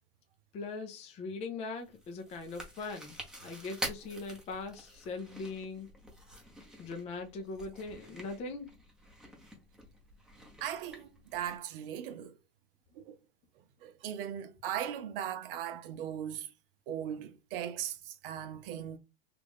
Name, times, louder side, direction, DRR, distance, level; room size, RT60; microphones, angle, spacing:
voice 1, 0.5-5.9 6.8-8.7, left 3 dB, 20° left, 0.4 m, -40 dB
Chewing mastication, 1.8-11.6, equal, ahead, 0.8 m, -47 dB
voice 2, 10.6-12.4 13.0-13.2 13.8-16.5 16.9-19.0, right 10 dB, 60° right, 0.7 m, -38 dB
3.1 x 2.4 x 3.4 m
hypercardioid pair, 125°, 31 cm